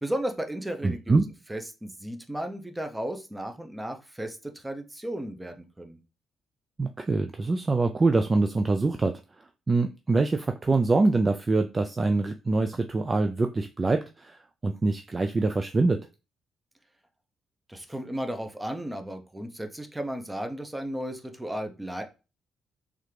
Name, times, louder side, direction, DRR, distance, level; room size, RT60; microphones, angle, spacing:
voice 1, 0.0-1.2 1.5-6.0 17.7-22.0, right 1 dB, 10° right, 6 dB, 0.7 m, -34 dB
voice 2, 0.8-1.2 6.8-16.1, right 3 dB, 30° right, 6 dB, 0.3 m, -25 dB
3.6 x 3.3 x 3.2 m, 0.30 s
cardioid pair, 90°, 0 cm